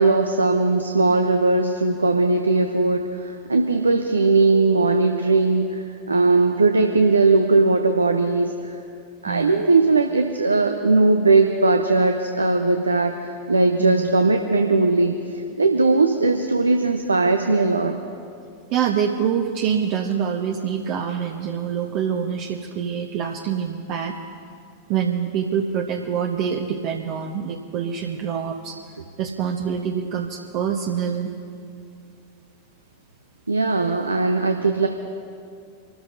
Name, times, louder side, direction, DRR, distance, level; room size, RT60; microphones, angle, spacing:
voice 1, 0.0-8.8 9.2-17.9 33.5-34.9, right 3 dB, 80° right, 5 dB, 0.7 m, -19 dB
voice 2, 9.3-9.6 13.8-14.1 18.7-24.1 24.9-28.8 29.2-31.3, right 8 dB, 45° right, 1 dB, 1.0 m, -25 dB
28.5 x 13.0 x 2.6 m, 2.4 s
figure-of-eight pair, 90°, 0 cm